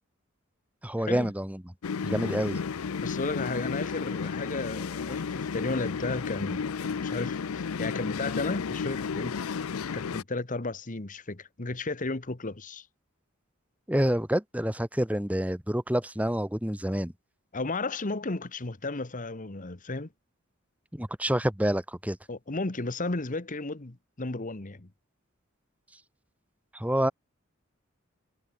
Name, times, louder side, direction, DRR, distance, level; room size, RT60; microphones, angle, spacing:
voice 1, 0.8-1.6 2.0-2.6 13.9-17.1 20.9-22.2 26.7-27.1, equal, 5° right, 1.8 m, -28 dB
sound 1, 1.8-10.2, left 5 dB, 80° left, 0.5 m, -33 dB
voice 2, 3.0-9.4 9.9-12.9 17.5-20.1 22.3-24.9, left 3 dB, 40° left, 1.3 m, -34 dB
head